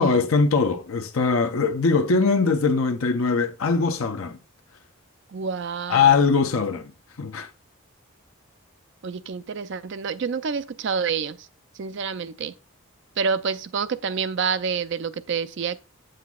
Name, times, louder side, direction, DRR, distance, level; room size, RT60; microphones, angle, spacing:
voice 1, 0.0-4.4 5.9-6.9 7.2-7.5, left 4 dB, 75° left, 0.6 m, -21 dB
voice 2, 5.3-6.2 9.0-11.5 11.8-12.5 13.2-15.8, right 6 dB, 55° right, 0.4 m, -28 dB
8.2 x 7.7 x 2.3 m
head